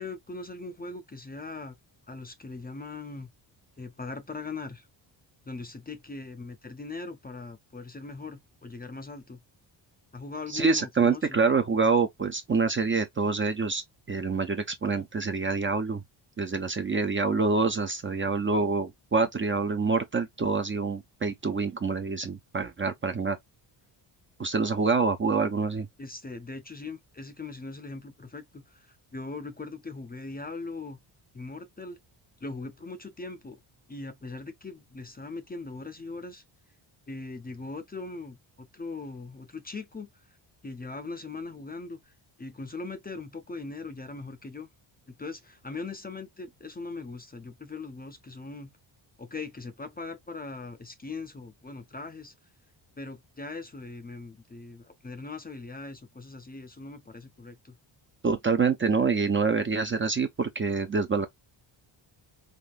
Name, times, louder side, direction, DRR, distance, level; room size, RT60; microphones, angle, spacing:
voice 1, 0.0-1.8 2.1-3.3 3.8-4.9 5.4-9.4 10.1-11.4 26.0-31.0 31.3-32.0 32.4-33.6 33.9-36.4 37.1-40.1 40.6-42.1 42.4-44.7 45.1-48.7 49.2-52.3 53.0-57.8, left 3 dB, 20° left, 0.6 m, -40 dB
voice 2, 10.5-13.8 14.1-16.0 16.4-23.4 24.4-25.9 58.2-61.3, right 4 dB, 25° right, 0.5 m, -26 dB
3.6 x 2.6 x 2.3 m
cardioid pair, 110°, 48 cm